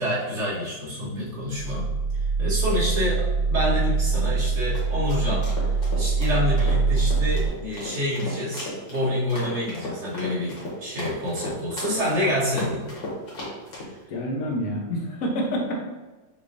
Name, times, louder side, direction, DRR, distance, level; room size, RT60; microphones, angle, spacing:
voice 1, 0.0-1.9 2.4-5.5 5.9-12.9, left 1 dB, 40° right, -7 dB, 1.5 m, -27 dB
voice 2, 1.0-1.3 14.1-15.8, equal, 55° left, -1 dB, 1.1 m, -28 dB
sound 1, 1.5-7.5, right 4 dB, 65° right, 2.0 m, -24 dB
sound 2, 4.5-13.9, left 1 dB, 70° left, 2.0 m, -36 dB
5.8 x 2.9 x 2.6 m, 1.2 s
omnidirectional pair, 2.0 m